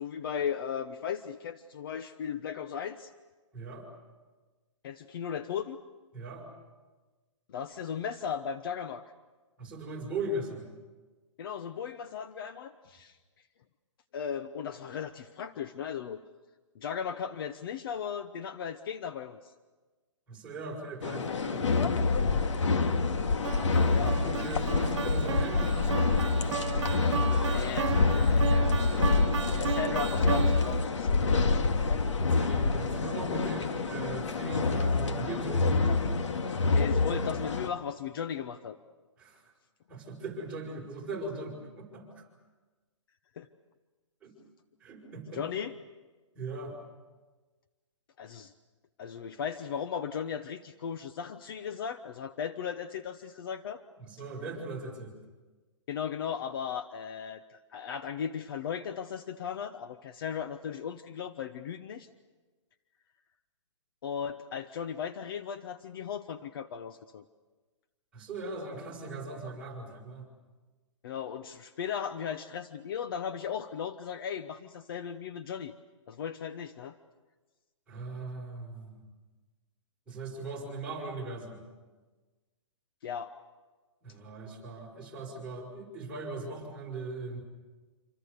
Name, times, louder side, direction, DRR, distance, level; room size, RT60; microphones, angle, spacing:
voice 1, 0.0-3.1 4.8-5.8 7.5-9.0 11.4-13.2 14.1-16.2 16.7-19.4 23.9-24.2 27.5-29.2 29.5-31.2 36.7-38.8 43.4-43.5 45.3-45.8 48.2-48.5 49.0-53.8 55.9-62.1 64.0-67.2 71.0-75.7 76.1-77.0 83.0-83.3, left 7 dB, 45° left, 10 dB, 1.0 m, -36 dB
voice 2, 3.5-3.9 6.1-6.5 9.6-10.6 20.3-22.0 23.7-26.1 31.4-31.8 32.2-36.0 39.2-39.5 39.9-42.2 44.2-44.3 44.8-45.4 46.3-46.8 54.0-55.1 68.1-70.3 77.9-79.0 80.1-81.6 84.0-87.4, right 2 dB, 5° right, -4 dB, 6.4 m, -39 dB
sound 1, 21.0-37.7, left 4 dB, 70° left, 2.0 m, -27 dB
sound 2, 23.4-30.9, right 8 dB, 65° right, 0.9 m, -35 dB
26.5 x 26.0 x 6.8 m, 1.3 s
hypercardioid pair, 155°, 16 cm